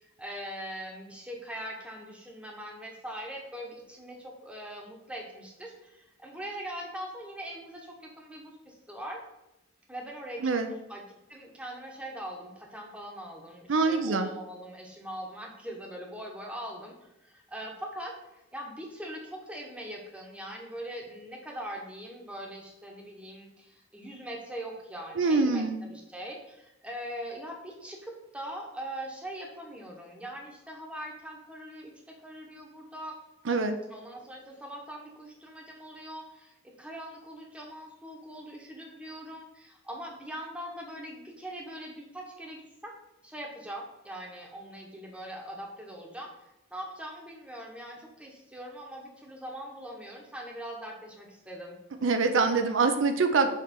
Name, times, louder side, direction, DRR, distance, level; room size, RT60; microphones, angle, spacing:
voice 1, 0.0-9.2 9.9-10.5 10.9-11.0 11.3-16.9 17.2-31.9 32.2-33.2 33.9-42.9 43.2-46.3 46.7-51.8, right 1 dB, 5° right, 0 dB, 1.0 m, -41 dB
voice 2, 13.7-14.3 25.2-25.8 33.5-33.8 52.0-53.5, right 4 dB, 70° right, 7 dB, 0.5 m, -24 dB
6.3 x 3.2 x 5.2 m, 0.93 s
head